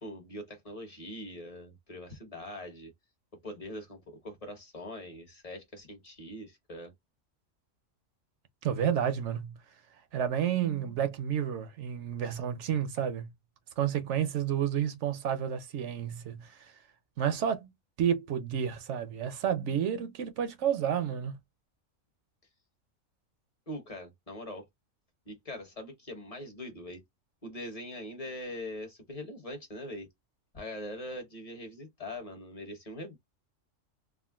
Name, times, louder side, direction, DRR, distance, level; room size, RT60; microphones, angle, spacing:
voice 1, 0.0-2.9 3.4-6.9 23.7-24.7 25.3-27.0 27.4-30.1 30.5-33.2, left 1 dB, 30° left, 1.0 m, -42 dB
voice 2, 8.6-9.6 10.1-13.3 13.8-16.7 17.2-17.7 18.0-21.4, right 9 dB, 65° right, 0.9 m, -30 dB
3.6 x 2.1 x 2.3 m
omnidirectional pair, 1.4 m